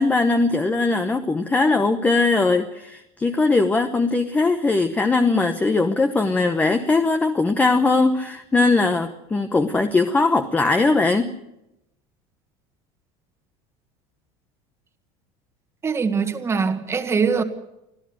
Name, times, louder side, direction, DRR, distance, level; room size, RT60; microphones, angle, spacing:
voice 1, 0.0-11.3, left 3 dB, 10° left, 7 dB, 1.0 m, -20 dB
voice 2, 15.8-17.4, right 5 dB, 15° right, 8 dB, 1.7 m, -22 dB
25.5 x 15.5 x 8.0 m, 0.87 s
cardioid pair, 170°, 17 cm